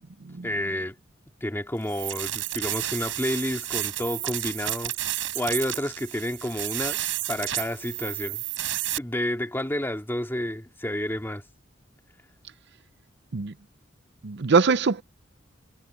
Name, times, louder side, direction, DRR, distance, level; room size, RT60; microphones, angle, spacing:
voice 1, 0.4-1.0 1.4-4.9 5.3-7.0 7.3-8.4 9.0-11.4, left 1 dB, 10° left, 2.4 m, -30 dB
sound 1, 1.8-9.0, right 14 dB, 85° right, 4.3 m, -31 dB
voice 2, 14.2-15.0, right 5 dB, 60° right, 0.7 m, -22 dB
head